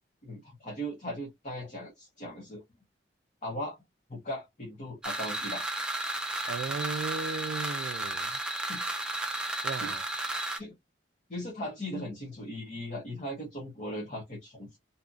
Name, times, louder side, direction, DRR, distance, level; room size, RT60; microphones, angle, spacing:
voice 1, 0.2-2.6 3.4-3.8 4.1-5.7 8.7-8.8 9.8-9.9 10.6-10.7 11.3-14.8, equal, 40° left, 0.9 m, -38 dB
sound 1, 5.0-10.6, right 2 dB, 5° right, 0.4 m, -33 dB
voice 2, 6.5-8.4 9.6-10.1, right 4 dB, 70° right, 0.3 m, -36 dB
2.8 x 2.5 x 2.4 m
head